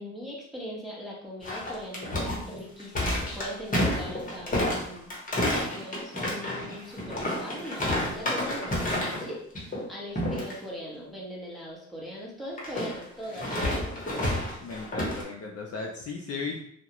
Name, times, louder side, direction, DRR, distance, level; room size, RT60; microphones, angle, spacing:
voice 1, 0.0-5.1 5.7-14.3, equal, ahead, -6 dB, 1.0 m, -40 dB
sound 1, 1.4-9.3 9.6-9.8 10.2-10.5 12.6-15.2, left 1 dB, 25° left, 0.9 m, -30 dB
voice 2, 14.6-16.6, left 4 dB, 55° left, 0 dB, 0.5 m, -36 dB
2.3 x 2.1 x 2.9 m, 0.68 s
cardioid pair, 90°, 30 cm